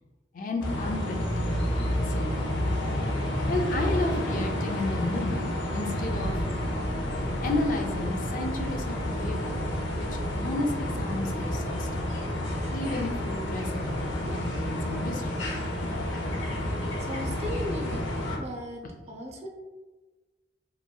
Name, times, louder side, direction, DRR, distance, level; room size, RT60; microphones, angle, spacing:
voice 1, 0.3-2.6 3.5-6.4 7.4-9.6 10.0-10.1 10.3-12.1 12.7-15.5, left 2 dB, 50° left, 2 dB, 0.4 m, -33 dB
sound 1, 0.6-18.4, left 1 dB, 85° left, 0.6 m, -30 dB
voice 2, 16.8-18.0 18.4-18.8 19.1-19.5, left 1 dB, 35° right, 1 dB, 0.5 m, -36 dB
2.9 x 2.5 x 2.2 m, 1.2 s
head